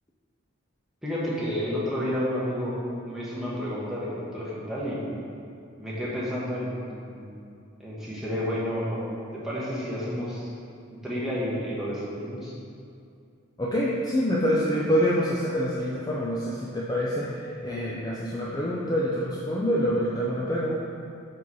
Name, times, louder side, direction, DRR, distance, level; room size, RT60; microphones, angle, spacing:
voice 1, 1.0-2.7 3.0-5.0 5.8-6.8 7.1-7.4 7.8-9.0 9.3-10.5 11.0-12.5, equal, ahead, -9 dB, 1.2 m, -30 dB
voice 2, 13.6-20.8, equal, 20° left, -6 dB, 0.4 m, -26 dB
4.7 x 4.7 x 5.5 m, 2.5 s
head